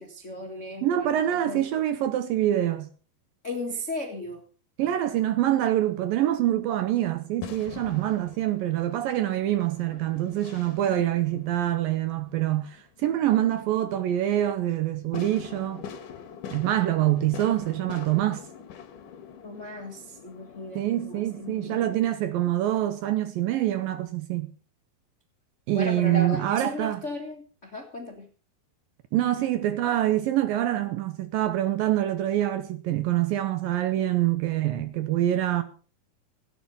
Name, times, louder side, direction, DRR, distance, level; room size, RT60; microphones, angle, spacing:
voice 1, 0.0-1.6 3.4-4.4 19.4-22.1 25.7-28.3, left 2 dB, 45° left, 0.9 m, -36 dB
voice 2, 0.8-2.9 4.8-15.8 16.5-18.5 20.8-24.5 25.7-27.1 29.1-35.6, right 13 dB, 75° right, 2.2 m, -25 dB
sound 1, 5.6-21.9, left 8 dB, 60° left, 2.6 m, -45 dB
16.5 x 9.5 x 5.4 m
omnidirectional pair, 4.7 m